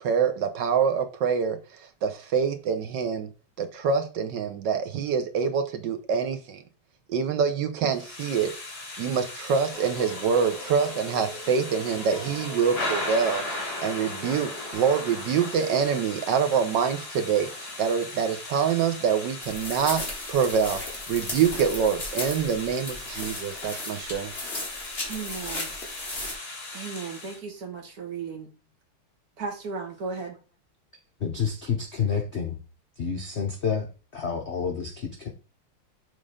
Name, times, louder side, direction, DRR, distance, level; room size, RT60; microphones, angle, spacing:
voice 1, 0.0-1.6 2.0-3.3 3.6-6.6 7.1-8.5 9.0-17.5 17.8-20.0 20.3-20.8 21.1-24.3, right 6 dB, 65° right, 1.2 m, -25 dB
Thunder / Rain, 7.9-27.4, left 2 dB, 60° left, 2.6 m, -38 dB
sound 1, 9.7-14.7, left 1 dB, 10° left, 1.8 m, -42 dB
sound 2, 19.4-26.3, left 2 dB, 30° left, 2.2 m, -36 dB
voice 2, 25.0-25.7 26.7-28.5 29.4-30.4, right 5 dB, 45° right, 1.7 m, -35 dB
voice 3, 31.2-32.6 33.0-35.3, left 6 dB, 75° left, 0.6 m, -29 dB
6.5 x 3.7 x 4.9 m
omnidirectional pair, 2.4 m